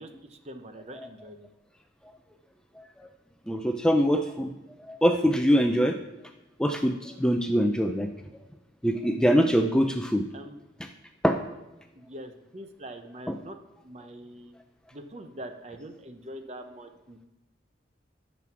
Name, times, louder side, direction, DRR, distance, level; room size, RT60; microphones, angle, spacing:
voice 1, 0.0-1.5 10.3-10.6 12.0-13.6 13.8-14.5 14.9-17.2, right 1 dB, 35° right, 7 dB, 0.7 m, -43 dB
voice 2, 2.8-3.1 3.5-4.5 4.8-6.0 6.6-8.1 8.8-10.2 11.2-11.4 13.3-13.4, equal, 5° left, 5 dB, 0.4 m, -24 dB
9.2 x 6.1 x 6.0 m, 0.96 s
head